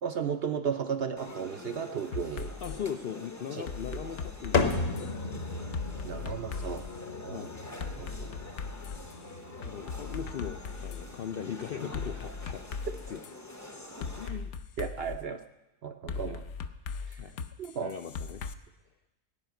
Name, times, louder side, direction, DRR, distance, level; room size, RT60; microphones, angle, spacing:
voice 1, 0.0-2.5 3.5-3.6 6.0-6.9 7.2-7.5 8.0-8.4 14.8-15.4 15.8-16.4 17.1-17.3 17.6-17.9, right 7 dB, 65° right, 8 dB, 0.6 m, -34 dB
sound 1, 1.2-14.3, left 2 dB, 15° left, 0.6 m, -46 dB
sound 2, 2.1-2.8 3.7-5.1 5.7-6.9 7.8-9.1 9.6-11.0 11.9-13.3 14.0-15.2 16.1-18.5, left 5 dB, 60° left, 0.8 m, -38 dB
voice 2, 2.6-5.5 7.3-7.6 9.6-12.8 13.1-13.2 13.6-13.7 14.0-14.5 16.2-16.4 17.2-17.5 17.8-18.4, left 8 dB, 80° left, 6 dB, 0.5 m, -39 dB
sound 3, 4.5-12.3, left 4 dB, 45° left, 1.1 m, -36 dB
17.0 x 5.7 x 9.1 m, 1.0 s
omnidirectional pair, 1.6 m